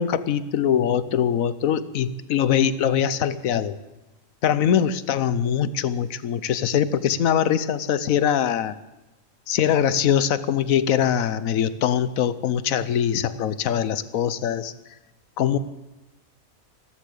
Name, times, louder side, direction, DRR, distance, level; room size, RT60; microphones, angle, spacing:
voice 1, 0.0-3.8 4.4-8.7 9.5-14.7 15.4-15.6, left 9 dB, 80° left, 15 dB, 1.2 m, -22 dB
15.0 x 14.0 x 6.6 m, 1.0 s
omnidirectional pair, 1.4 m